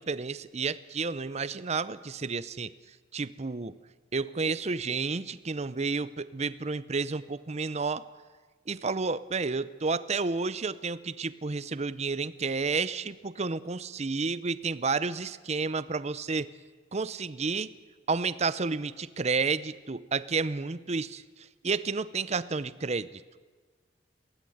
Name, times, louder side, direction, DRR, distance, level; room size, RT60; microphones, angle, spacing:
voice 1, 0.0-2.7 3.1-3.8 4.1-8.0 8.7-16.5 16.9-17.7 18.1-21.2 21.6-23.2, right 4 dB, 40° right, 16 dB, 0.7 m, -31 dB
23.0 x 17.0 x 7.9 m, 1.4 s
head